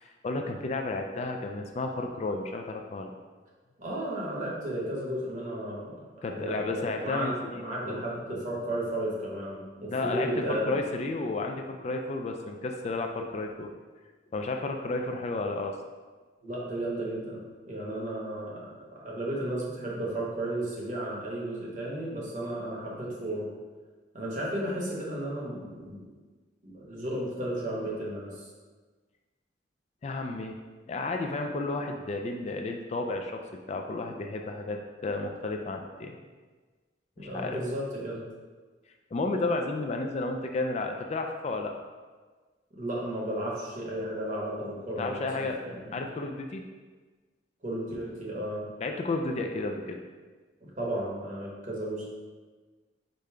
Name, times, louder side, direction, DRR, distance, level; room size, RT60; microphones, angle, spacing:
voice 1, 0.0-3.1 6.2-8.0 9.9-13.7 14.3-15.8 30.0-30.6 30.9-33.4 33.7-36.2 37.2-37.6 39.1-41.7 45.0-45.6 45.9-46.6 48.8-50.0, left 3 dB, 40° left, 3 dB, 0.3 m, -32 dB
voice 2, 3.8-6.0 6.3-10.8 16.4-23.5 24.1-26.0 26.6-28.4 37.2-38.2 42.8-46.0 47.6-48.6 50.6-52.1, right 1 dB, 45° right, -5 dB, 1.2 m, -34 dB
5.2 x 2.2 x 4.7 m, 1.4 s
head